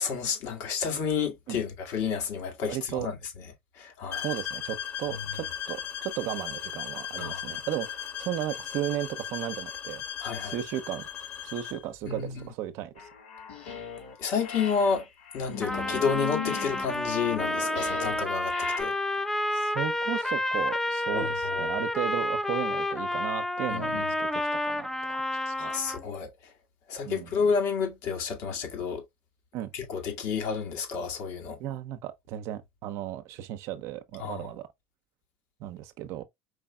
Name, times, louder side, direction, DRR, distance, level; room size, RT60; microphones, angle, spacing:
voice 1, 0.0-3.5 3.8-4.3 7.2-7.5 10.2-10.6 12.0-12.5 13.6-13.7 14.2-15.1 15.3-18.9 21.1-21.7 23.7-24.1 25.6-26.3 26.9-29.0 29.7-31.6 34.2-34.5, left 6 dB, 60° left, 1.8 m, -30 dB
voice 2, 2.7-3.1 4.2-10.0 10.4-11.1 11.4-13.1 15.6-15.7 19.5-25.7 27.1-27.3 29.5-29.7 31.6-34.7 35.6-36.2, right 13 dB, 60° right, 0.7 m, -35 dB
sound 1, 4.1-11.9, left 9 dB, 40° left, 1.5 m, -37 dB
sound 2, 13.0-14.1 14.4-18.8, left 6 dB, 90° left, 1.8 m, -38 dB
Trumpet, 15.6-26.0, left 1 dB, 5° left, 0.4 m, -30 dB
4.8 x 3.4 x 2.3 m
supercardioid pair, 100°, 6 cm